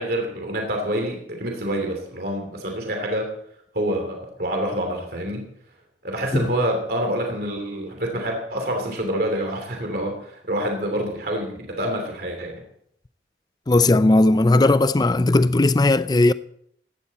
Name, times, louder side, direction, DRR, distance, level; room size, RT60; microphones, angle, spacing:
voice 1, 0.0-3.3 3.7-5.4 6.0-12.6, right 1 dB, 60° right, 2.9 m, -27 dB
voice 2, 13.7-16.3, left 2 dB, 25° left, 0.4 m, -17 dB
16.0 x 11.5 x 4.2 m
head